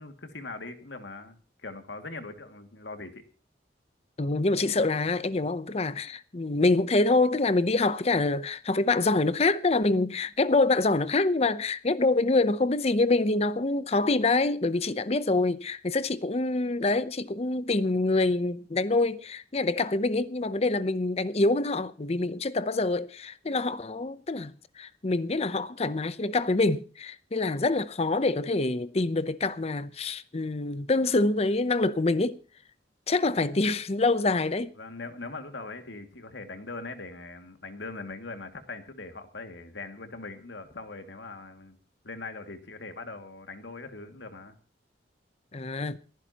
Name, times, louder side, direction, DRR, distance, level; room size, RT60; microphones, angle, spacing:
voice 1, 0.0-3.2 33.4-33.5 34.8-41.8 42.0-44.5, left 3 dB, 80° left, 2.2 m, -41 dB
voice 2, 4.2-32.4 33.1-34.7 45.5-46.0, left 2 dB, 35° left, 0.7 m, -26 dB
28.5 x 10.5 x 2.9 m
head